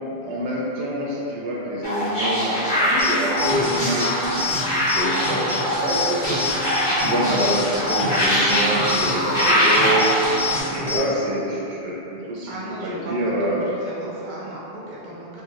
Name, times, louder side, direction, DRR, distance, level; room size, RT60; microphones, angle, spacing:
voice 1, 0.2-13.7, right 1 dB, 80° right, -5 dB, 0.9 m, -26 dB
sound 1, 1.8-10.6, equal, 65° left, 1.4 m, -22 dB
sound 2, 3.0-11.0, left 3 dB, 50° left, 0.9 m, -29 dB
voice 2, 8.5-9.8 12.5-15.4, right 1 dB, 55° right, -6 dB, 0.5 m, -36 dB
3.2 x 2.8 x 2.4 m, 3.0 s
omnidirectional pair, 1.2 m